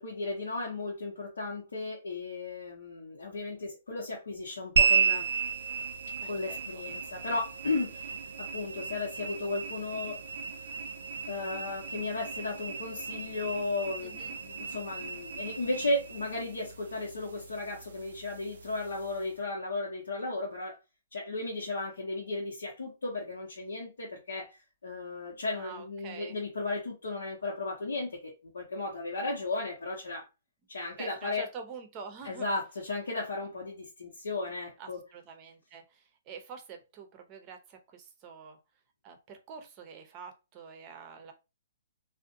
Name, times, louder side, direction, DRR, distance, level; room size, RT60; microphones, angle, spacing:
voice 1, 0.0-5.3 6.2-10.2 11.3-20.8 21.1-24.6 24.8-30.3 30.7-31.5 32.2-35.0, left 2 dB, 80° left, -4 dB, 0.8 m, -35 dB
sound 1, 4.8-19.4, right 6 dB, 75° right, 0.4 m, -34 dB
voice 2, 6.2-6.8 14.0-14.4 25.5-26.4 31.0-32.5 34.8-38.6 39.0-41.3, right 5 dB, 30° right, 5 dB, 0.6 m, -46 dB
2.5 x 2.1 x 2.6 m, 0.27 s
hypercardioid pair, 135°, 0 cm